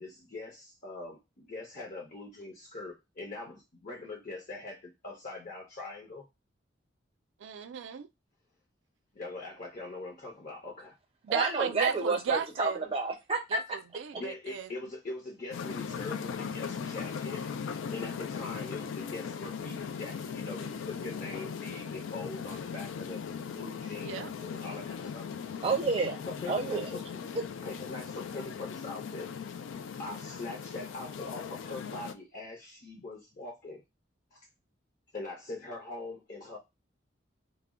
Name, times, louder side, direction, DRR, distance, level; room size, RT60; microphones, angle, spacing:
voice 1, 0.0-6.3 9.1-10.9 14.1-17.4 17.9-23.2 23.5-25.3 26.2-27.0 27.6-29.3 30.0-33.8 34.3-34.5 35.1-36.6, left 2 dB, 45° left, 0.6 m, -42 dB
voice 2, 7.4-8.1 11.2-12.8 13.5-14.7 24.1-24.3, right 6 dB, 75° right, 0.4 m, -34 dB
voice 3, 11.3-13.6 25.6-26.2 26.5-26.9, right 3 dB, 30° right, 0.6 m, -29 dB
sound 1, 15.5-32.1, left 6 dB, 80° left, 0.3 m, -39 dB
2.2 x 2.0 x 3.4 m
head